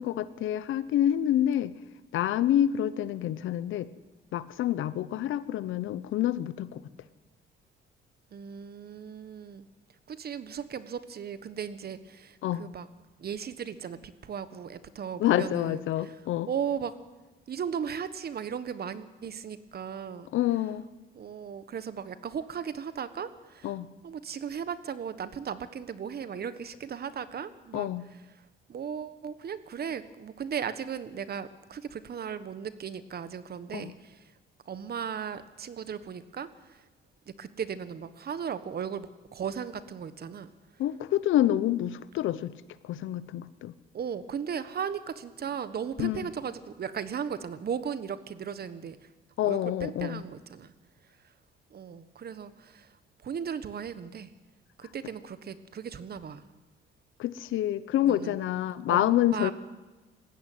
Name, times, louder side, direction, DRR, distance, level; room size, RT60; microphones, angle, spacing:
voice 1, 0.0-1.7 2.1-3.9 4.3-6.8 12.4-12.7 15.2-16.5 20.3-20.9 23.6-23.9 27.7-28.1 33.7-33.9 40.8-42.5 42.8-43.7 46.0-46.3 49.4-50.2 57.2-59.5, left 12 dB, 80° left, 16 dB, 0.9 m, -27 dB
voice 2, 8.3-9.7 10.1-12.9 13.2-16.2 16.5-17.0 17.5-20.3 21.1-23.7 24.0-27.9 28.7-34.2 34.7-36.9 37.4-40.5 43.9-49.0 49.4-50.7 51.7-52.9 53.2-54.3 54.8-56.5 58.0-58.4 58.9-59.5, right 7 dB, 50° right, 13 dB, 1.4 m, -36 dB
19.5 x 15.5 x 9.3 m, 1.2 s
cardioid pair, 90°, 20 cm